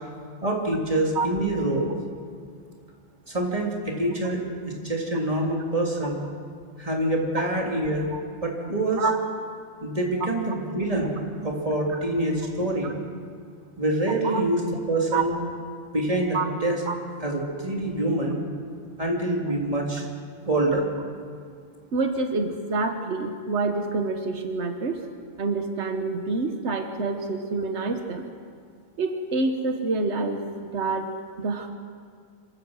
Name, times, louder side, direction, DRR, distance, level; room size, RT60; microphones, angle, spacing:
voice 1, 0.4-1.9 3.3-4.4 4.8-6.2 6.8-8.1 8.4-9.0 9.8-11.2 11.4-13.0 13.8-14.6 14.9-15.3 15.9-16.8 17.2-18.4 19.0-20.1 20.4-20.8, right 1 dB, 35° right, -1 dB, 3.1 m, -25 dB
voice 2, 21.9-25.0 25.4-28.2 29.0-31.1 31.4-31.7, right 3 dB, 90° right, 6 dB, 1.5 m, -27 dB
26.5 x 15.5 x 6.4 m, 2.1 s
omnidirectional pair, 1.1 m